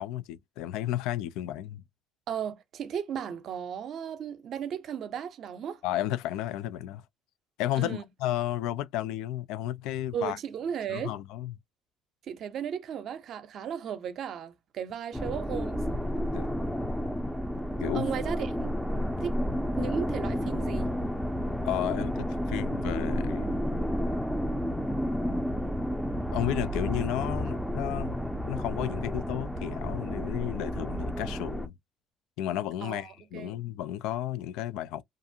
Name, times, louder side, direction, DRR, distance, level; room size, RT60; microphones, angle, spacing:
voice 1, 0.0-1.8 5.8-7.0 7.6-10.4 10.9-11.5 16.3-16.5 17.8-18.1 21.6-23.5 26.3-28.2 28.4-31.7 32.4-35.0, left 13 dB, 85° left, 0.3 m, -33 dB
voice 2, 2.3-5.8 7.8-8.0 10.1-11.2 12.2-15.8 17.9-18.7 19.2-19.3 19.8-20.9 32.8-33.5, right 8 dB, 55° right, 0.6 m, -35 dB
sound 1, 15.1-31.7, equal, 5° left, 0.5 m, -31 dB
2.4 x 2.4 x 2.7 m
cardioid pair, 125°, 0 cm